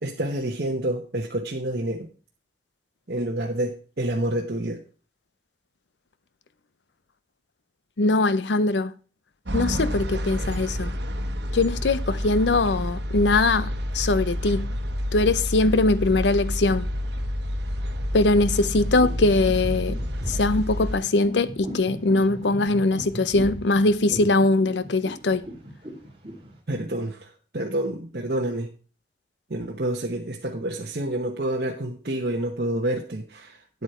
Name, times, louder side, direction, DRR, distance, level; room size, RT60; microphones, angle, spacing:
voice 1, 0.0-2.1 3.1-4.8 26.7-28.7 29.5-33.8, right 1 dB, 60° right, 1.0 m, -28 dB
voice 2, 8.0-8.9 9.5-10.9 11.5-14.7 15.1-16.9 18.1-20.0 20.3-25.4, left 2 dB, 90° left, 0.7 m, -21 dB
sound 1, 9.5-21.0, equal, 80° right, 1.2 m, -29 dB
sound 2, 18.1-26.5, equal, 30° right, 2.2 m, -37 dB
9.5 x 8.2 x 4.4 m
head